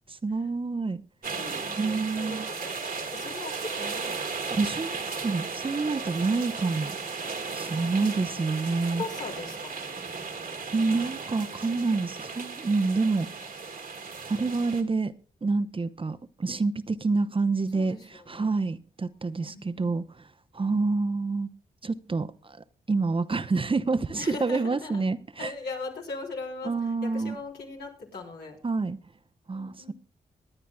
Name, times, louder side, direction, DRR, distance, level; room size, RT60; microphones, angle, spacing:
voice 1, 0.1-1.0 1.8-2.5 4.5-7.0 7.5-9.0 10.7-13.3 14.3-15.1 15.4-20.3 20.5-21.5 21.8-22.6 22.9-25.5 26.6-27.4 28.6-29.0 29.5-29.9, right 3 dB, 35° right, 0.8 m, -28 dB
sound 1, 1.2-14.8, right 4 dB, 60° right, 1.8 m, -35 dB
voice 2, 1.4-4.6 7.7-10.0 17.7-18.4 19.4-19.9 24.2-25.1 25.4-28.6 29.5-29.9, left 3 dB, 85° left, 3.7 m, -40 dB
23.0 x 9.9 x 2.3 m
cardioid pair, 50°, 16 cm